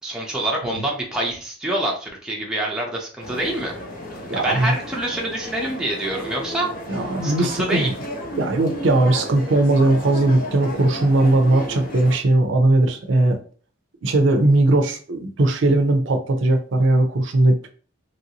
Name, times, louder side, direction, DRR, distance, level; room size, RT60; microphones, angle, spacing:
voice 1, 0.0-3.7 4.3-6.7 7.2-7.9, right 1 dB, 5° right, -2 dB, 0.5 m, -26 dB
sound 1, 3.2-12.2, left 1 dB, 45° left, 0.7 m, -33 dB
voice 2, 4.3-4.7 6.9-7.9 8.4-13.4 14.0-17.7, right 2 dB, 65° right, 5 dB, 0.5 m, -19 dB
3.1 x 2.6 x 2.8 m, 0.40 s
head